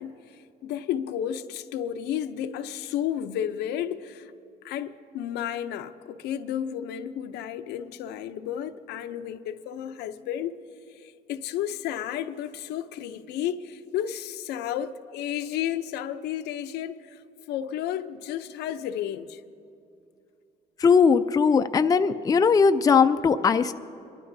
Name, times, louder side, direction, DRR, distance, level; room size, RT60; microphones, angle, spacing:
voice 1, 0.0-4.3 4.6-10.6 10.9-19.4, left 10 dB, 80° left, 0.6 m, -32 dB
voice 2, 20.8-23.7, left 5 dB, 20° left, 0.4 m, -19 dB
24.0 x 12.5 x 2.7 m
cardioid pair, 110°, 17 cm